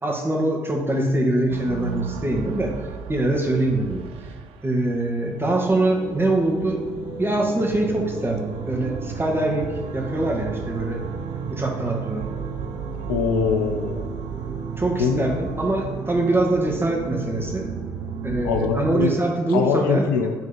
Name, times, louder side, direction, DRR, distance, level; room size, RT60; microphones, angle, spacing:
voice 1, 0.0-2.7 3.1-4.0 4.6-6.8 7.2-11.0 11.5-12.2 14.8-17.7 18.2-20.1, right 2 dB, 20° right, 0 dB, 1.8 m, -23 dB
sound 1, 1.5-19.1, right 8 dB, 65° right, 0.5 m, -34 dB
sound 2, 5.4-18.3, equal, 45° right, 2.3 m, -38 dB
voice 2, 13.1-14.1 15.0-15.3 18.4-20.3, left 5 dB, 85° left, 5 dB, 0.6 m, -23 dB
9.5 x 3.8 x 5.2 m, 1.3 s
hypercardioid pair, 50°, 10 cm